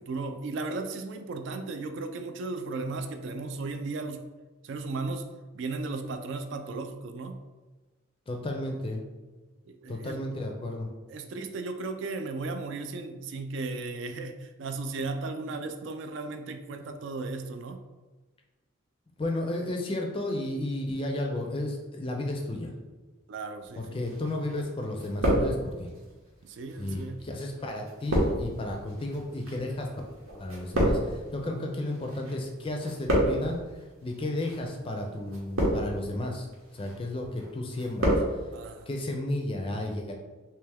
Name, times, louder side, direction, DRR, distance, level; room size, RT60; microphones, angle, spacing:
voice 1, 0.0-4.2 4.6-5.3 5.5-7.4 9.7-10.2 11.1-17.8 23.3-24.0 26.4-27.2 31.4-31.7 38.5-38.9, right 3 dB, 60° right, 7 dB, 0.3 m, -35 dB
voice 2, 8.3-9.0 9.9-10.9 19.2-22.7 23.8-25.9 26.8-29.9 30.4-33.6 34.0-36.5 36.7-38.2 38.9-40.1, left 1 dB, 25° left, 2 dB, 0.4 m, -33 dB
sound 1, 24.1-24.7 24.9-26.0 26.7-32.3 32.6-33.6 34.3-34.6 35.3-36.1 36.5-37.0 37.3-38.3 38.6-38.7, right 1 dB, 85° right, 1.0 m, -28 dB
3.3 x 2.8 x 3.4 m, 1.3 s
head